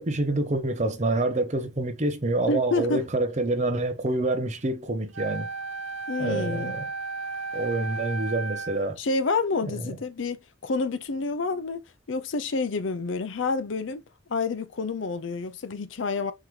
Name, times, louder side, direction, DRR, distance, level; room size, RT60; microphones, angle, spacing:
voice 1, 0.0-5.5 6.2-6.9 7.5-9.0 9.6-9.9, right 2 dB, 35° right, 0.7 m, -27 dB
voice 2, 2.5-3.0 6.1-6.8 9.0-11.8 12.1-14.0 14.3-16.3, left 3 dB, 70° left, 0.6 m, -28 dB
Wind instrument woodwind instrument, 5.1-8.9, right 4 dB, 90° right, 0.9 m, -34 dB
4.6 x 3.6 x 3.1 m
head